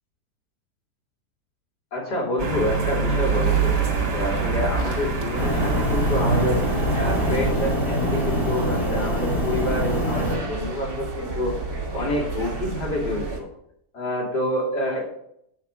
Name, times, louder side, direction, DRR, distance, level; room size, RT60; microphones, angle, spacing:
voice 1, 1.9-3.8 4.1-6.6 6.9-11.5 11.9-13.5 13.9-15.1, left 1 dB, 85° left, -2 dB, 3.5 m, -27 dB
sound 1, 2.4-7.5, right 5 dB, 85° right, 2.6 m, -25 dB
sound 2, 3.2-13.4, right 3 dB, 65° right, 2.6 m, -32 dB
sound 3, 5.4-10.4, equal, ahead, 3.5 m, -24 dB
8.4 x 6.0 x 6.0 m, 0.72 s
omnidirectional pair, 1.7 m